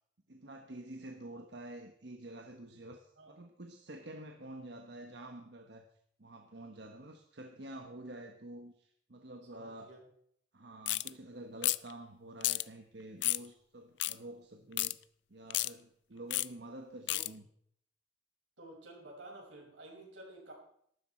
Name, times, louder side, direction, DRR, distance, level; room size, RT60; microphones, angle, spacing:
voice 1, 0.3-5.9 6.2-9.9 10.5-15.0 15.3-17.5, right 1 dB, 65° right, 4 dB, 1.1 m, -48 dB
voice 2, 9.5-10.0 17.1-17.3 18.6-20.5, right 1 dB, 90° right, -1 dB, 6.1 m, -51 dB
sound 1, 10.9-11.1 11.6-11.9 12.4-12.6 13.2-13.5 14.0-14.1 14.8-14.9 15.5-15.7 16.3-16.5 17.1-17.3, left 18 dB, 70° left, 0.4 m, -31 dB
13.5 x 12.5 x 4.4 m, 0.67 s
head